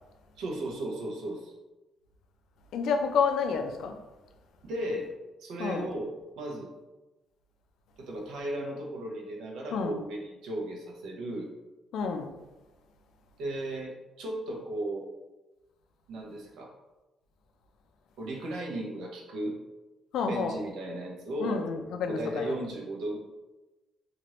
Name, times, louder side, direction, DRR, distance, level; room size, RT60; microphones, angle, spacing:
voice 1, 0.4-1.5 4.6-5.1 5.4-6.7 8.0-11.5 13.4-15.1 16.1-16.7 18.2-19.6 20.3-21.6 22.1-23.2, right 1 dB, 85° right, -1 dB, 0.7 m, -35 dB
voice 2, 2.7-4.0 5.6-5.9 9.7-10.0 11.9-12.3 20.1-20.5 21.4-22.5, left 5 dB, 80° left, 6 dB, 0.3 m, -29 dB
2.8 x 2.5 x 3.0 m, 1.1 s
cardioid pair, 90°, 0 cm